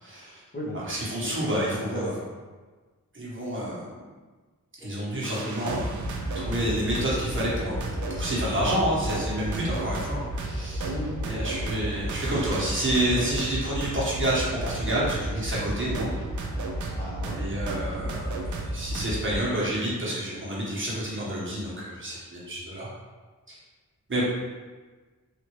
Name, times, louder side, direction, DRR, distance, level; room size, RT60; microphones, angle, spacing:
voice 1, 0.0-0.4 0.7-2.1 3.1-3.9 4.8-16.1 16.8-16.9 17.3-18.4 18.7-22.9 23.5-23.6 24.1-24.2, right 1 dB, 35° right, -7 dB, 1.1 m, -29 dB
voice 2, 0.5-2.3 10.8-11.2 16.9-17.4, equal, 30° left, -6 dB, 0.8 m, -36 dB
sound 1, 4.8-17.5, left 1 dB, ahead, 0.4 m, -45 dB
sound 2, 5.2-19.4, right 1 dB, 60° right, 0.5 m, -32 dB
3.3 x 2.5 x 3.0 m, 1.3 s
wide cardioid pair, 80°, 34 cm